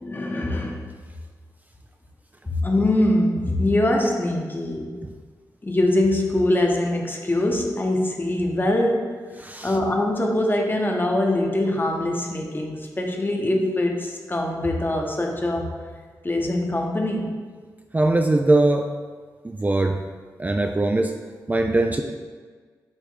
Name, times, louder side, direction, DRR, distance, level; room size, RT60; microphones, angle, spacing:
voice 1, 0.0-0.8 2.5-5.0 5.6-9.3 9.6-15.8 16.2-17.4, left 1 dB, 30° left, 1 dB, 1.1 m, -23 dB
voice 2, 9.4-9.7 17.9-18.9 19.4-20.0 20.4-21.1 21.5-22.0, right 2 dB, 20° right, 4 dB, 0.4 m, -21 dB
8.0 x 3.0 x 3.9 m, 1.5 s
cardioid pair, 50°, 7 cm